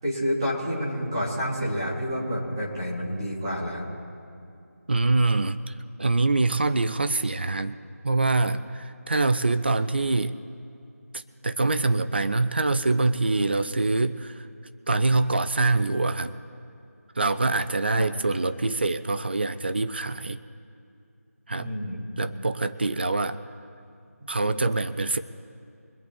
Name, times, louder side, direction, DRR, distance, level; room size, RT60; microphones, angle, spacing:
voice 1, 0.0-3.9 17.9-18.1 21.6-22.1, equal, 15° right, -7 dB, 3.6 m, -29 dB
voice 2, 4.9-7.8 8.0-10.4 11.1-14.5 14.9-16.4 17.2-20.4 21.5-21.7 22.2-23.4 24.3-25.2, right 3 dB, 40° right, 11 dB, 0.7 m, -25 dB
24.5 x 8.4 x 4.4 m, 2.5 s
figure-of-eight pair, 170°, 8 cm